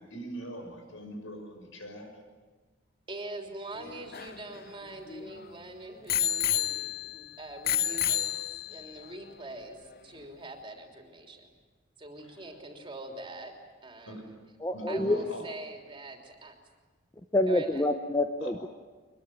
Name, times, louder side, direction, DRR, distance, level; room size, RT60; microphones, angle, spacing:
voice 1, 0.0-2.1 12.2-12.5 14.1-14.2 14.7-15.4 18.4-18.5, right 1 dB, 90° left, 4 dB, 6.5 m, -42 dB
voice 2, 3.1-11.5 12.0-13.5 13.8-14.4 14.9-16.6 17.5-17.9, right 2 dB, 25° right, 3 dB, 3.3 m, -44 dB
Bicycle bell, 3.8-5.4 6.1-7.2 7.7-8.9 9.6-9.7, left 10 dB, 50° left, 0.7 m, -30 dB
voice 3, 14.6-15.2 17.3-18.7, left 1 dB, 15° left, 7 dB, 0.8 m, -27 dB
24.0 x 22.5 x 9.2 m, 1.4 s
head